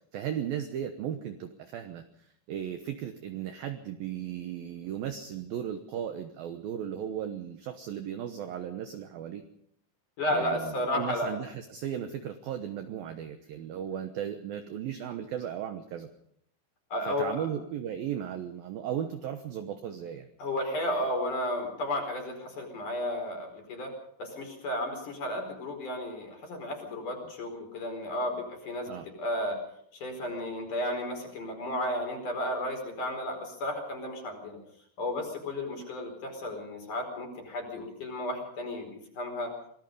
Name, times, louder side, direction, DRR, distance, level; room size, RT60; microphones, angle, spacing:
voice 1, 0.1-2.0 2.5-9.4 10.3-16.1 17.1-20.3 28.9-29.1, right 9 dB, 75° right, 8 dB, 2.2 m, -36 dB
voice 2, 10.2-11.3 16.9-17.5 20.4-23.9 24.2-29.6 29.9-34.6 35.0-39.5, left 1 dB, 40° left, 3 dB, 5.8 m, -33 dB
26.0 x 19.0 x 5.4 m, 0.69 s
omnidirectional pair, 5.6 m